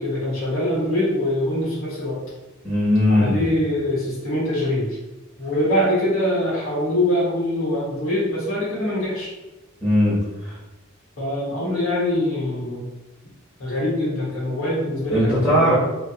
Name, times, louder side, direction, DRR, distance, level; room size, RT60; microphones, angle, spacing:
voice 1, 0.0-2.2 3.1-5.0 5.4-9.3 11.2-12.8 13.6-15.7, left 1 dB, 80° left, -7 dB, 1.1 m, -23 dB
voice 2, 2.6-3.4 9.8-10.2 10.4-10.5 15.1-15.8, left 1 dB, 10° left, -10 dB, 0.7 m, -18 dB
2.4 x 2.3 x 2.6 m, 1.0 s
head